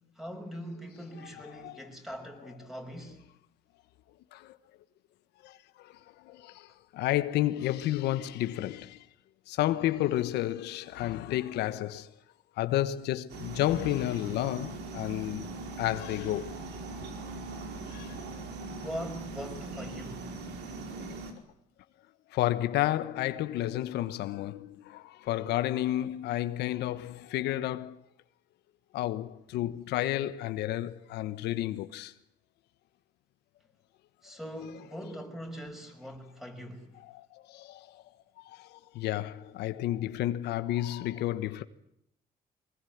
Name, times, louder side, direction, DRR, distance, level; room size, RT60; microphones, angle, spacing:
voice 1, 0.0-3.2 18.7-20.4 34.2-36.9, equal, ahead, 5.7 m, -42 dB
voice 2, 1.5-1.8 4.3-4.6 5.4-9.1 9.5-12.1 12.6-15.5 15.8-16.6 17.9-18.2 20.9-21.1 22.3-28.0 28.9-32.1 37.0-38.0 38.4-41.6, left 14 dB, 80° left, 1.3 m, -31 dB
sound 1, 13.3-21.3, right 3 dB, 80° right, 4.8 m, -40 dB
23.0 x 20.5 x 9.5 m
cardioid pair, 110°, 17 cm